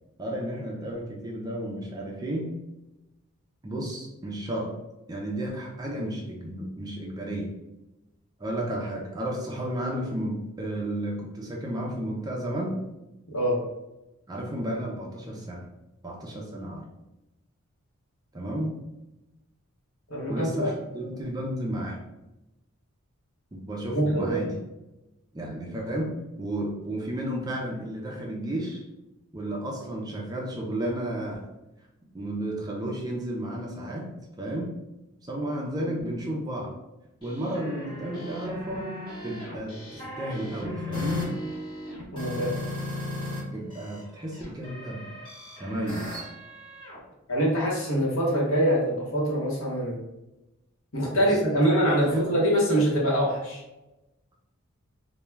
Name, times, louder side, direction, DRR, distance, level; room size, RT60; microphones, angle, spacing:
voice 1, 0.2-2.5 3.6-4.8 5.1-7.5 8.4-12.8 14.3-15.6 16.0-16.8 18.3-18.8 20.3-22.0 23.5-24.5 25.3-28.8 29.3-31.5 32.1-34.7 35.3-36.8 37.2-38.9 39.2-41.3 43.5-45.2 45.6-46.3 51.1-51.4 52.0-52.3, right 1 dB, 20° right, -1 dB, 0.3 m, -32 dB
voice 2, 20.1-20.7 23.9-24.4 42.1-42.5 47.3-50.0 50.9-53.6, equal, 70° left, -3 dB, 0.9 m, -24 dB
sound 1, 37.2-43.4 43.7-47.0, left 2 dB, 20° left, 0.9 m, -36 dB
2.2 x 2.1 x 3.1 m, 0.98 s
head